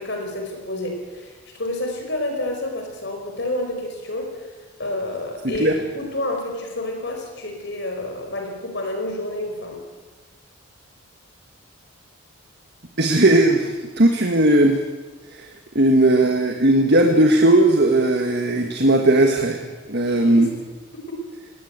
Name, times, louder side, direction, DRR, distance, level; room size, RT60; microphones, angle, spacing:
voice 1, 0.0-4.4 4.8-9.8 20.1-20.5 20.9-21.2, left 1 dB, 55° left, 3 dB, 4.8 m, -29 dB
voice 2, 5.4-5.8 13.0-14.8 15.3-15.5 15.7-19.6 19.9-20.5, right 1 dB, 50° right, 4 dB, 1.7 m, -17 dB
19.0 x 19.0 x 8.2 m, 1.3 s
head